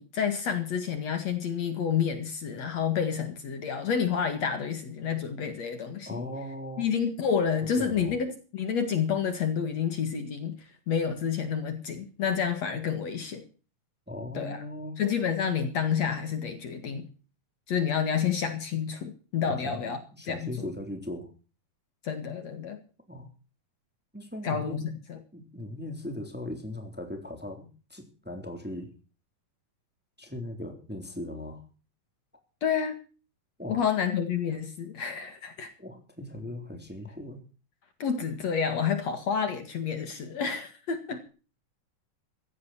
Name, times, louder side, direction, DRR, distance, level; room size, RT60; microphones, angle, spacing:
voice 1, 0.0-6.3 6.8-13.5 14.3-14.6 15.0-17.1 17.7-20.0 20.3-20.7 22.0-22.8 24.4-24.8 25.1-25.2 32.6-33.0 33.7-35.7 38.0-41.2, left 7 dB, 55° left, 8 dB, 3.0 m, -29 dB
voice 2, 6.1-6.9 7.8-8.1 14.1-15.0 19.5-21.3 23.1-23.3 24.1-24.9 25.3-28.9 30.2-31.6 33.6-33.8 35.8-37.4, left 1 dB, 5° right, 5 dB, 3.3 m, -38 dB
16.0 x 15.5 x 4.4 m, 0.37 s
omnidirectional pair, 3.8 m